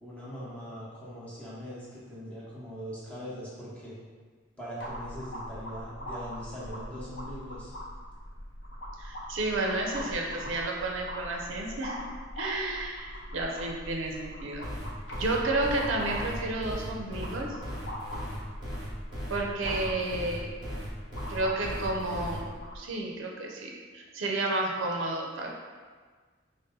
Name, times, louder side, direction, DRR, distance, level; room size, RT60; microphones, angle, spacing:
voice 1, 0.0-4.0 4.6-7.7, equal, 5° left, -9 dB, 0.8 m, -41 dB
sound 1, 4.8-22.8, equal, 60° left, 0.6 m, -41 dB
voice 2, 9.0-12.0 12.4-14.7 15.2-17.5 19.3-20.5 21.3-25.5, right 2 dB, 80° right, 0 dB, 0.5 m, -31 dB
sound 2, 14.6-22.4, equal, 20° right, 0.9 m, -38 dB
4.0 x 2.1 x 3.7 m, 1.5 s
head